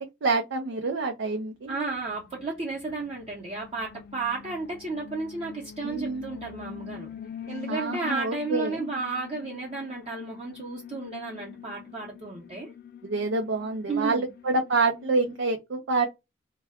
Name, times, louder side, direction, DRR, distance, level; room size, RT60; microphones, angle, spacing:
voice 1, 0.0-1.7 5.8-6.3 7.7-8.8 13.0-16.1, right 3 dB, 80° right, 0.5 m, -27 dB
voice 2, 1.7-7.1 7.5-12.7 13.9-14.3, right 3 dB, 35° right, 0.7 m, -33 dB
Alarm, 2.0-15.4, left 8 dB, 55° left, 0.4 m, -44 dB
2.2 x 2.2 x 3.5 m
head